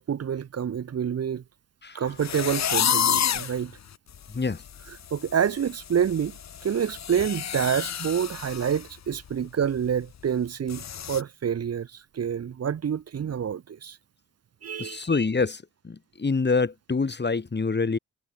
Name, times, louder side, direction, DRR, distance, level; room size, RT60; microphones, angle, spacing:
voice 1, 0.0-1.4 1.9-3.7 4.9-6.3 6.6-14.0 14.6-15.0, right 8 dB, 55° right, 1.3 m, -28 dB
sound 1, 2.2-3.6 4.1-4.2 4.6-4.9 5.1-8.8 9.1-9.3 9.8-9.9 10.7-11.2, left 9 dB, 60° left, 1.7 m, -29 dB
voice 2, 14.8-18.0, left 4 dB, 35° left, 3.7 m, -26 dB
supercardioid pair, 50°, 30 cm